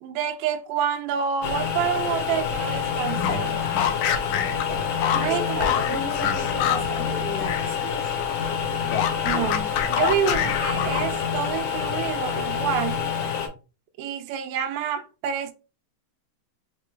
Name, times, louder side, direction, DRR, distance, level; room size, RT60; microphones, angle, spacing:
voice 1, 0.0-3.6 5.2-6.0 9.2-13.0 14.0-15.5, right 8 dB, 80° right, 1.8 m, -28 dB
sound 1, 1.4-13.5, left 7 dB, 65° left, 1.9 m, -27 dB
sound 2, 3.0-7.8 8.0-11.3, left 9 dB, 85° left, 2.1 m, -27 dB
voice 2, 5.1-8.1, left 1 dB, 20° right, 2.3 m, -34 dB
4.9 x 3.6 x 2.3 m
omnidirectional pair, 3.4 m